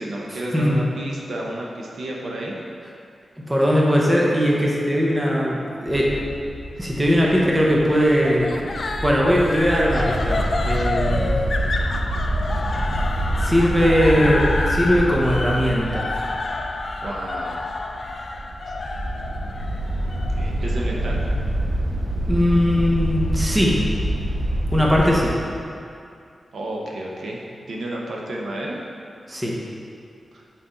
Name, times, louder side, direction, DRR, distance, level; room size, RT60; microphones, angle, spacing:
voice 1, 0.0-2.5 17.0-17.7 18.7-18.8 20.4-21.2 25.1-25.5 26.5-27.4 27.7-28.8 30.3-30.4, right 1 dB, 75° right, -2 dB, 0.8 m, -31 dB
voice 2, 3.4-6.1 6.8-8.5 9.0-11.3 13.4-16.1 22.2-23.8 24.7-25.3 29.3-29.5, equal, 10° right, -4 dB, 0.8 m, -19 dB
sound 1, 5.9-25.3, right 1 dB, 40° right, 0.7 m, -27 dB
sound 2, 8.2-21.4, left 3 dB, 45° left, 0.3 m, -29 dB
6.1 x 4.2 x 3.8 m, 2.4 s
wide cardioid pair, 145°, 0 cm